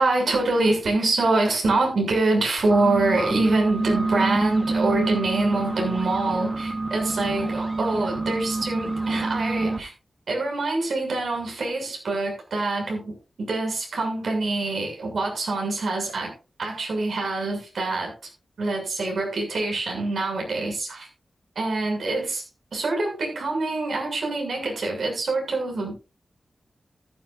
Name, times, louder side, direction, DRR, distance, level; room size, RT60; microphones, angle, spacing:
voice 1, 0.0-9.9 10.3-16.3 16.6-18.1 18.6-21.1 21.6-22.4 22.7-26.0, right 2 dB, 80° right, 1 dB, 7.0 m, -25 dB
sound 1, 2.6-9.8, right 2 dB, 20° right, 2.8 m, -27 dB
14.5 x 13.5 x 2.7 m, 0.31 s
wide cardioid pair, 95°, 0 cm